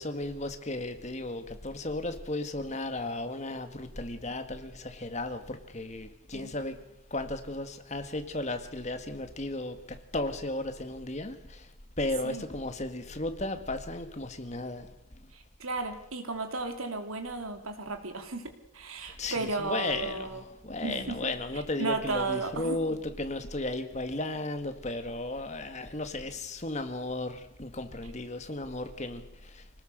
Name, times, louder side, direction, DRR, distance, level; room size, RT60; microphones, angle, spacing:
voice 1, 0.0-6.8 7.1-11.6 12.0-14.9 19.2-29.2 29.5-29.6, left 2 dB, 35° left, 1.8 m, -35 dB
voice 2, 15.3-20.4 20.8-21.3 21.8-22.8, right 3 dB, 85° right, 2.8 m, -34 dB
25.5 x 18.5 x 6.6 m
head